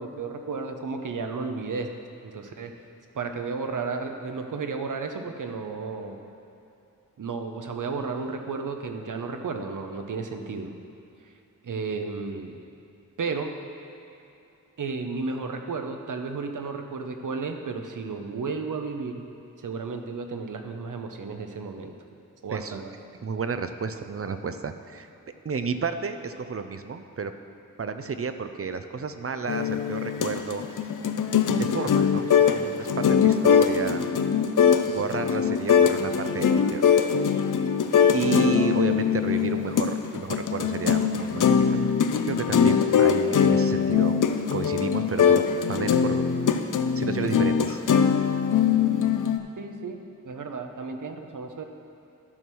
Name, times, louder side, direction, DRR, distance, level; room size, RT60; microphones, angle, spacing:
voice 1, 0.0-1.9 2.2-2.7 3.1-6.2 7.2-10.7 11.6-12.6 13.2-13.5 14.8-19.2 19.6-21.9 22.4-22.9 49.6-50.0 50.2-51.6, right 4 dB, 70° right, 5 dB, 0.9 m, -33 dB
voice 2, 22.5-22.8 23.1-25.1 25.4-27.3 27.8-30.6 31.6-34.0 34.9-37.0 38.1-41.9 42.3-44.2 44.5-46.4 47.0-47.8, right 5 dB, 45° right, 9 dB, 0.5 m, -32 dB
sound 1, 29.5-49.4, left 7 dB, 70° left, 0.6 m, -22 dB
12.5 x 4.5 x 6.2 m, 2.8 s
wide cardioid pair, 80°, 32 cm